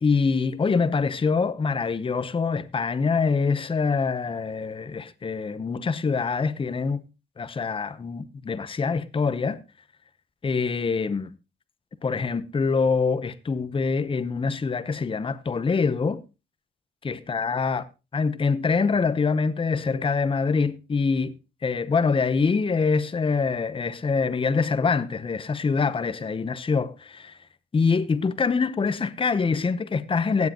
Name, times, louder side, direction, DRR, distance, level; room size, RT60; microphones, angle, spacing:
voice 1, 0.0-7.0 7.4-9.6 10.4-11.3 12.0-16.2 17.0-17.8 18.1-21.3 21.6-27.3 27.7-30.5, left 4 dB, 25° left, 0.8 m, -25 dB
17.5 x 7.6 x 2.9 m
cardioid pair, 90°, 20 cm